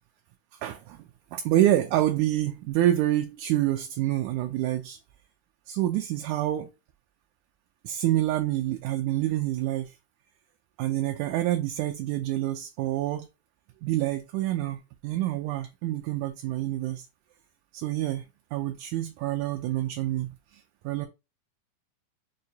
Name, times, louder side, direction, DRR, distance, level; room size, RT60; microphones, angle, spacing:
voice 1, 0.6-5.0 5.7-6.7 7.8-9.9 10.8-13.3 13.8-17.1 17.7-18.2 18.5-21.1, right 13 dB, 80° right, 1.8 m, -27 dB
6.4 x 2.2 x 2.7 m
omnidirectional pair, 3.7 m